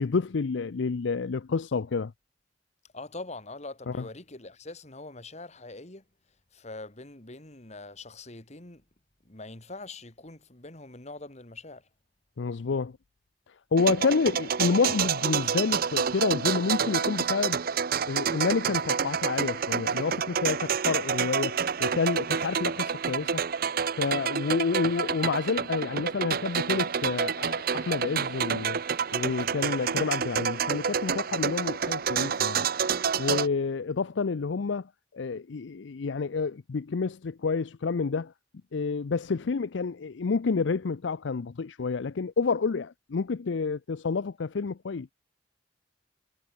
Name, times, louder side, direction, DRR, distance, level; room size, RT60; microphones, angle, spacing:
voice 1, 0.0-2.1 3.9-4.0 12.4-12.9 13.7-17.6 18.1-23.4 24.0-28.8 29.1-32.7 33.2-34.9 35.1-38.3 38.7-45.1, left 4 dB, 75° left, 0.5 m, -29 dB
voice 2, 2.9-6.0 6.5-8.8 9.2-11.9, left 2 dB, 35° left, 2.5 m, -43 dB
sound 1, 13.8-33.5, right 7 dB, 50° right, 0.7 m, -28 dB
head